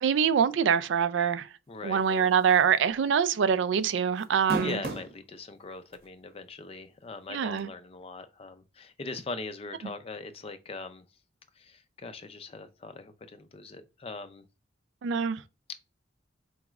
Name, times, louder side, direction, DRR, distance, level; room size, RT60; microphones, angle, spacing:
voice 1, 0.0-1.5 1.8-4.8 7.3-7.7 15.0-15.4, right 7 dB, 75° right, 0.4 m, -24 dB
voice 2, 1.7-2.3 4.3-11.1 11.6-14.5, left 3 dB, 30° left, 0.4 m, -41 dB
sound 1, 2.5-2.8 3.1-3.2 4.2-5.2 5.9-6.0 7.6-7.7, right 2 dB, 55° right, 0.8 m, -32 dB
4.7 x 3.1 x 2.3 m
head